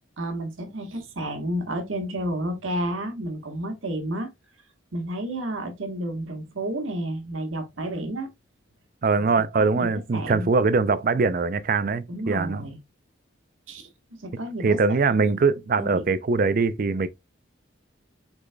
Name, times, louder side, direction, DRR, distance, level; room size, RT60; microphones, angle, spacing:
voice 1, 0.2-4.3 4.9-8.3 9.5-9.9 10.1-10.5 12.1-12.8 13.7-13.9 14.2-14.8 15.1-15.4 15.8-16.0, right 1 dB, 85° right, 1.3 m, -31 dB
voice 2, 9.0-12.7 14.6-17.1, right 4 dB, 45° right, 0.4 m, -22 dB
6.0 x 4.0 x 2.2 m
head